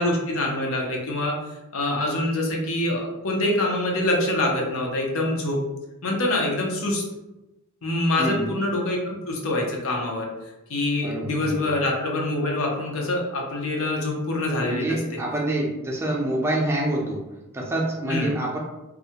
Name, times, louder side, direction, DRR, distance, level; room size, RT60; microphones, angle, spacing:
voice 1, 0.0-1.3 1.7-5.6 6.0-7.0 7.8-10.3 10.7-15.0 18.1-18.3, left 1 dB, 75° left, 0 dB, 0.6 m, -25 dB
voice 2, 8.2-8.5 11.0-11.8 14.6-17.2 17.5-18.6, right 1 dB, 10° right, -3 dB, 0.4 m, -26 dB
2.4 x 2.1 x 2.7 m, 1.0 s
head